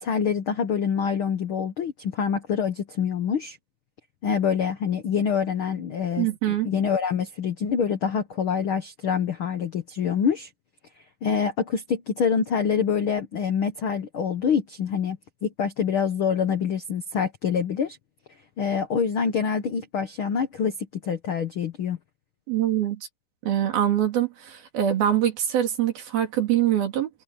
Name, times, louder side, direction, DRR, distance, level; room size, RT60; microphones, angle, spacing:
voice 1, 0.0-3.6 4.2-10.5 11.2-18.0 18.6-20.7 21.0-22.0, left 7 dB, 85° left, 1.1 m, -26 dB
voice 2, 6.2-6.7 22.5-23.1 23.4-27.1, right 11 dB, 85° right, 4.9 m, -24 dB
omnidirectional pair, 4.2 m